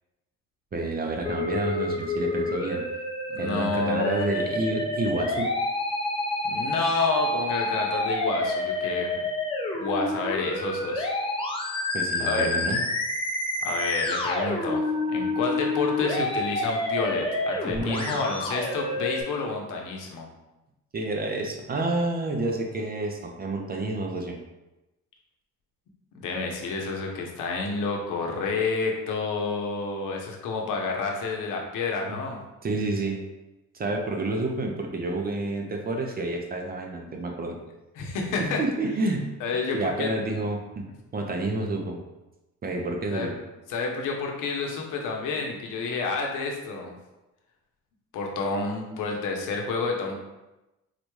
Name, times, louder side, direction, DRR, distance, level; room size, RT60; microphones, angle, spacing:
voice 1, 0.7-2.8 3.4-5.5 11.9-12.8 17.7-18.2 20.9-24.4 32.1-32.2 32.6-33.2 33.7-37.6 38.4-39.3 39.7-40.9 41.1-42.0 42.6-43.3, right 2 dB, 30° right, 2 dB, 0.5 m, -29 dB
Musical instrument, 1.2-19.2, left 2 dB, 15° left, 0.6 m, -28 dB
voice 2, 3.3-4.3 6.5-9.2 9.8-11.1 12.2-12.8 13.6-14.8 15.1-20.3 26.1-32.4 38.0-38.6 39.4-40.3 43.1-43.3 43.7-47.0 48.1-50.1, left 4 dB, 85° left, 1 dB, 0.8 m, -29 dB
4.0 x 2.2 x 3.1 m, 1.0 s
cardioid pair, 120°, 31 cm